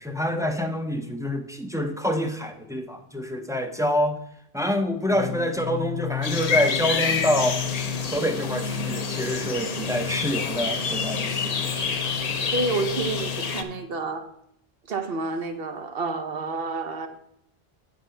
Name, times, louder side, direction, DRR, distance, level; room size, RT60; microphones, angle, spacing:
voice 1, 0.0-4.2 4.5-11.7, left 1 dB, 5° right, 0.6 m, -27 dB
Singing, 5.1-14.0, left 6 dB, 40° right, 1.1 m, -34 dB
sound 1, 6.2-13.6, left 5 dB, 45° left, 0.7 m, -28 dB
voice 2, 12.0-14.3 14.9-17.1, right 3 dB, 70° right, 1.2 m, -29 dB
8.6 x 5.1 x 5.6 m
omnidirectional pair, 1.0 m